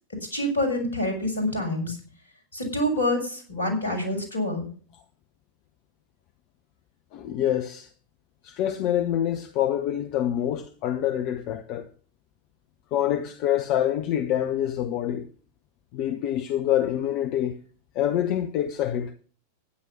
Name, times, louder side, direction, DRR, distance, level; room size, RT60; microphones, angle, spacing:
voice 1, 0.3-2.0 2.5-4.6, left 1 dB, 70° left, 6.4 m, -26 dB
voice 2, 7.1-7.9 8.4-11.9 12.9-15.3 15.9-17.5 17.9-19.1, left 11 dB, 40° left, 0.9 m, -26 dB
12.5 x 10.5 x 6.0 m
figure-of-eight pair, 90°, 0 cm